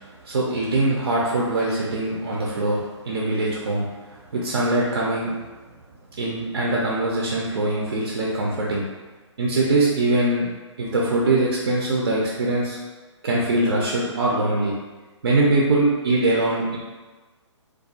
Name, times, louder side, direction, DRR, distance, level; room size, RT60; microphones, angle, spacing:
voice 1, 0.3-3.9 4.3-5.3 6.2-8.8 9.4-10.5 10.8-12.8 13.2-14.7 15.2-16.8, right 2 dB, 50° right, -3 dB, 0.4 m, -22 dB
2.3 x 2.3 x 2.6 m, 1.2 s
figure-of-eight pair, 130°, 16 cm